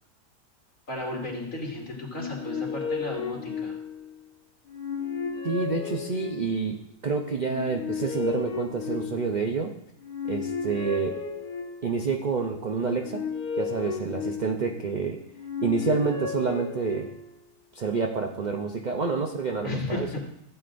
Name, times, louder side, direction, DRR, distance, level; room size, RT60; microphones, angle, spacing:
voice 1, 0.9-3.8 19.6-20.2, left 2 dB, 55° left, -3 dB, 3.0 m, -34 dB
sound 1, 2.1-4.2 4.7-6.7 7.4-9.5 10.0-12.0 12.7-14.9 15.4-17.4, left 6 dB, 70° left, 1.4 m, -34 dB
voice 2, 5.4-6.8 7.0-9.7 10.3-11.2 11.8-13.2 13.6-15.2 15.6-17.1 17.7-20.1, right 4 dB, 85° right, 2 dB, 0.4 m, -28 dB
14.5 x 9.1 x 2.5 m, 0.77 s
omnidirectional pair, 1.7 m